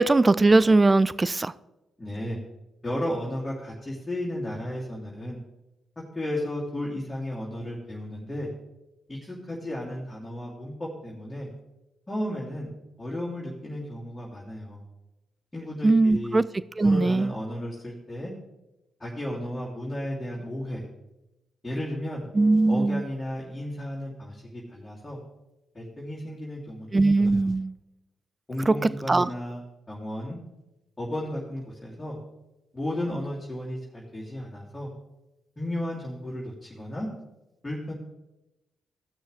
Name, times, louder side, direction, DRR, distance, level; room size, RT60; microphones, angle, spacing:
voice 1, 0.0-1.5 15.8-16.4 16.8-17.3 22.3-23.0 26.9-27.7 28.7-28.8 29.1-29.3, right 2 dB, 30° right, 0.4 m, -20 dB
voice 2, 2.0-2.4 2.8-5.4 6.1-8.5 9.1-11.5 12.1-12.7 13.0-14.8 15.5-16.4 16.8-18.3 19.0-20.8 21.6-22.2 22.7-25.2 25.7-27.5 28.5-29.6 29.9-30.4 31.0-32.2 32.7-34.9 35.6-37.1 37.6-37.9, left 1 dB, 25° left, 2.9 m, -34 dB
16.5 x 6.3 x 3.4 m
hypercardioid pair, 40°, 0 cm